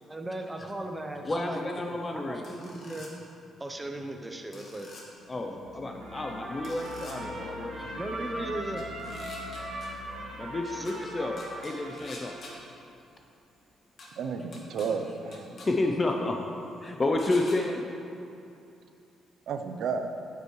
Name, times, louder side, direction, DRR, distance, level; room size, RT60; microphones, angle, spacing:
voice 1, 0.1-3.1 3.6-4.9 7.3-7.5 7.8-8.9 10.7-10.9, right 1 dB, 15° right, 4 dB, 0.7 m, -37 dB
voice 2, 1.2-2.5 5.3-7.8 10.3-12.4 15.5-16.4 16.8-17.8, left 2 dB, 25° left, 2 dB, 0.5 m, -30 dB
sound 1, 2.4-3.1 4.5-5.0 6.6-7.2 8.8-9.9 10.9-11.0 11.4-12.5 14.0-14.1 14.5-14.9 15.3-15.7 17.2-17.6, left 2 dB, 55° left, 1.5 m, -46 dB
sound 2, 5.2-12.4, left 4 dB, 90° left, 0.9 m, -48 dB
Trumpet, 6.0-12.6, right 1 dB, 50° right, 1.5 m, -40 dB
voice 3, 14.2-15.6 19.5-20.1, right 5 dB, 70° right, 7 dB, 0.5 m, -32 dB
8.1 x 6.9 x 3.1 m, 2.8 s
cardioid pair, 90°, 0 cm